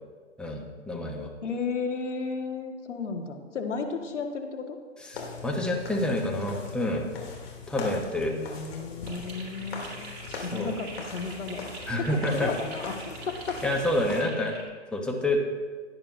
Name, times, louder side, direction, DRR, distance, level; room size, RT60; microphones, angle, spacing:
voice 1, 0.4-1.3 5.0-7.1 7.7-8.3 10.5-10.7 11.9-12.5 13.6-14.5 14.9-15.4, left 1 dB, ahead, 0 dB, 0.9 m, -28 dB
voice 2, 1.4-4.8 8.3-11.7 12.1-13.6, left 4 dB, 70° left, 4 dB, 1.8 m, -34 dB
sound 1, 5.1-14.2, left 4 dB, 55° left, 3.0 m, -41 dB
sound 2, 9.0-14.6, right 3 dB, 35° right, 3.5 m, -44 dB
17.0 x 10.5 x 2.7 m, 1.5 s
hypercardioid pair, 130°, 37 cm